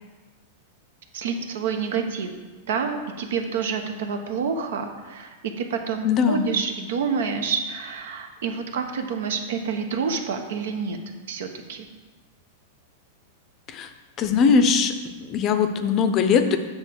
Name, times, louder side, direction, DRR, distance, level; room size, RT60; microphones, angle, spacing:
voice 1, 1.1-2.3 2.7-11.0 11.3-11.9, right 6 dB, 75° right, 5 dB, 0.9 m, -28 dB
voice 2, 6.0-6.5 13.7-13.9 14.2-14.9 15.2-16.6, left 6 dB, 30° left, 8 dB, 0.6 m, -20 dB
7.9 x 3.6 x 6.2 m, 1.3 s
supercardioid pair, 145°, 0 cm